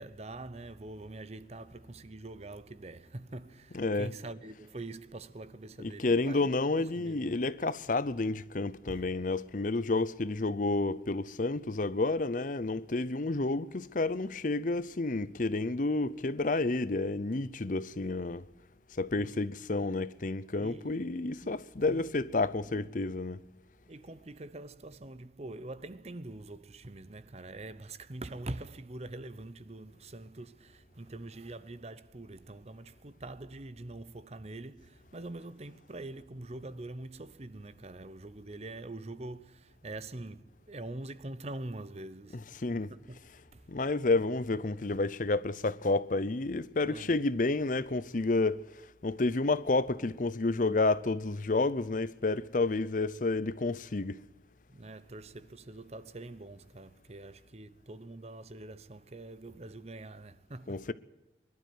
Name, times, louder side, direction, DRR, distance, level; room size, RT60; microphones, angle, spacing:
voice 1, 0.0-7.3 8.9-9.1 19.1-19.3 20.6-21.0 21.4-22.0 22.7-22.9 23.9-42.5 42.9-43.2 43.5-43.7 46.8-47.1 54.7-60.9, right 2 dB, 35° right, 0.8 m, -44 dB
voice 2, 3.7-4.1 5.8-18.5 19.0-23.4 42.3-42.9 43.7-48.6 49.0-54.2 60.7-60.9, left 3 dB, 45° left, 0.7 m, -30 dB
23.0 x 12.0 x 9.4 m
head